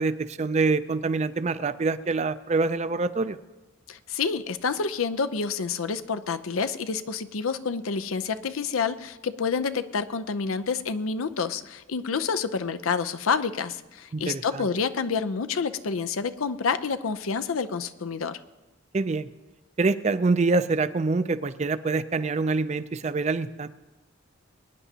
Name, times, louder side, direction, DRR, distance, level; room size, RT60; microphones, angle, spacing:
voice 1, 0.0-3.4 14.1-14.7 18.9-19.3 19.8-23.7, right 3 dB, 35° right, 13 dB, 0.4 m, -25 dB
voice 2, 3.9-18.4, left 5 dB, 90° left, 11 dB, 0.6 m, -28 dB
23.5 x 10.0 x 2.8 m, 1.1 s
head